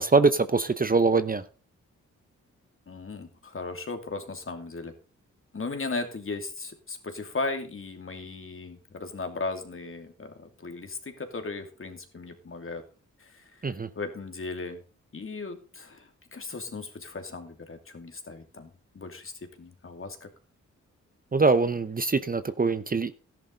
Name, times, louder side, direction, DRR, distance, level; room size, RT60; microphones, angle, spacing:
voice 1, 0.0-1.4 13.6-13.9 21.3-23.1, right 4 dB, 30° right, 0.8 m, -23 dB
voice 2, 2.9-4.9 5.5-12.8 13.2-13.4 14.0-14.8 15.1-19.3 19.6-20.3, left 3 dB, 45° left, 2.7 m, -37 dB
13.0 x 11.0 x 4.0 m
cardioid pair, 55°, 31 cm